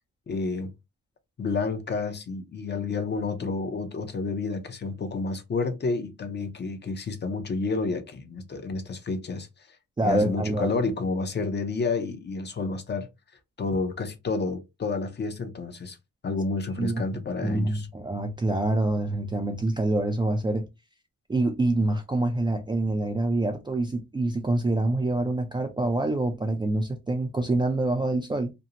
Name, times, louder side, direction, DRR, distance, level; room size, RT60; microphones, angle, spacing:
voice 1, 0.3-0.7 1.4-9.8 10.0-13.1 13.6-16.0 16.2-17.9, left 3 dB, 35° left, 0.6 m, -30 dB
voice 2, 10.0-10.7 16.8-17.0 17.4-20.6 21.3-28.5, right 2 dB, 15° right, 0.4 m, -26 dB
2.6 x 2.0 x 2.7 m
cardioid pair, 100°, 31 cm